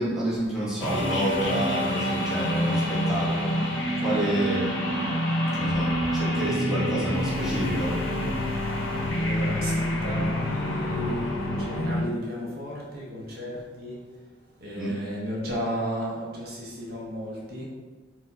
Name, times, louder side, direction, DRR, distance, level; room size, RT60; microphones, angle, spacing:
voice 1, 0.0-9.2 14.8-14.9, equal, ahead, -9 dB, 0.7 m, -30 dB
sound 1, 0.8-12.0, equal, 75° left, 0.5 m, -27 dB
voice 2, 8.5-8.8 9.1-14.0 14.6-17.6, equal, 50° right, -4 dB, 0.6 m, -34 dB
4.2 x 2.0 x 2.6 m, 1.4 s
head